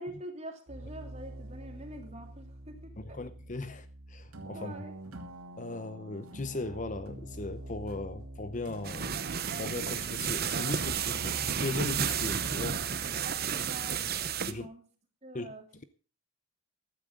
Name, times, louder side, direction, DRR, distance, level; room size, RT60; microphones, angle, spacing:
voice 1, 0.0-3.2 4.5-4.9 13.0-14.9 15.2-15.7, right 1 dB, 30° right, 3.0 m, -45 dB
sound 1, 0.7-14.6, right 1 dB, 90° right, 2.7 m, -45 dB
voice 2, 3.0-4.8 5.6-9.3 9.6-12.8 14.5-14.7 15.3-15.5, left 2 dB, 35° left, 0.7 m, -38 dB
sound 2, 8.8-14.5, right 8 dB, 45° right, 0.9 m, -32 dB
15.0 x 12.5 x 3.8 m
head